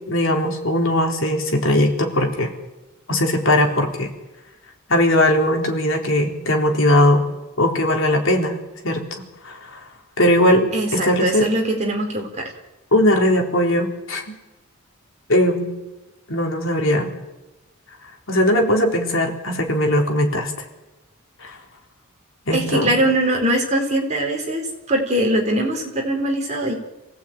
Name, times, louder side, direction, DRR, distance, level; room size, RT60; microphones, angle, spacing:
voice 1, 0.1-2.5 3.1-4.1 4.9-7.2 7.6-8.6 8.8-9.8 10.2-11.5 12.9-14.4 15.3-15.7 16.3-17.1 18.3-20.5 21.4-21.6 22.5-23.0, left 1 dB, 60° left, 2 dB, 3.8 m, -19 dB
voice 2, 10.7-12.5 22.5-24.6 24.9-26.7, right 1 dB, 30° right, 1 dB, 4.5 m, -21 dB
27.5 x 18.0 x 9.1 m, 1.1 s
head